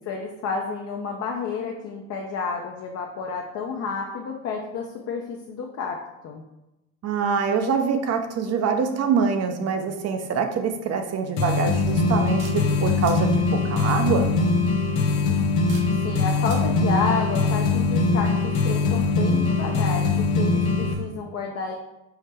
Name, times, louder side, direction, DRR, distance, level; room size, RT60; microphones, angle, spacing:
voice 1, 0.1-6.4 15.0-15.3 16.0-21.8, left 5 dB, 45° left, 1 dB, 0.6 m, -30 dB
voice 2, 7.0-14.4, right 5 dB, 40° right, 6 dB, 0.6 m, -25 dB
sound 1, 11.4-20.9, left 3 dB, 75° left, 0.8 m, -22 dB
sound 2, 11.9-12.5 13.0-13.2 14.4-14.7 15.7-15.8 16.4-16.6, right 3 dB, 75° right, 1.3 m, -43 dB
5.7 x 2.1 x 3.3 m, 0.93 s
supercardioid pair, 85°, 38 cm